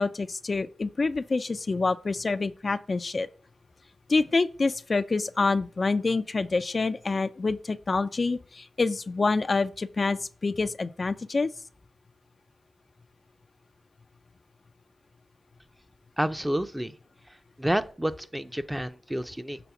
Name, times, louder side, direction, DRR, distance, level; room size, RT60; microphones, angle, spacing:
voice 1, 0.0-3.3 4.1-11.5, left 3 dB, 45° left, 0.3 m, -27 dB
voice 2, 16.2-17.0 17.6-19.6, right 1 dB, 10° right, 0.5 m, -29 dB
7.0 x 3.4 x 5.8 m
cardioid pair, 70°, 0 cm